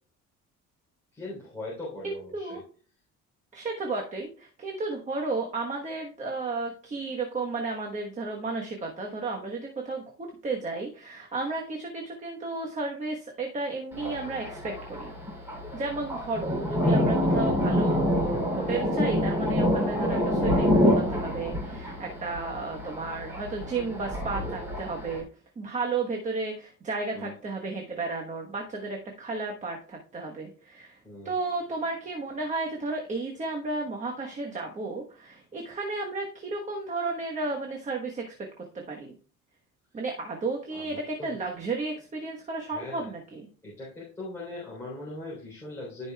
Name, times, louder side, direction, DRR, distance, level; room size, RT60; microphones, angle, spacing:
voice 1, 1.1-2.6 27.1-27.4 31.0-31.3 39.9-40.1 40.7-41.3 42.7-43.1 43.6-46.1, left 2 dB, 10° left, -6 dB, 3.4 m, -40 dB
voice 2, 2.0-2.6 3.5-15.1 15.7-25.2 25.6-31.0 31.2-38.5 38.9-39.1 39.9-43.5, right 3 dB, 25° right, 1 dB, 1.2 m, -33 dB
Thunder, 13.9-25.2, left 1 dB, 10° right, 3.3 m, -27 dB
15.0 x 5.3 x 2.3 m, 0.41 s
cardioid pair, 160°, 29 cm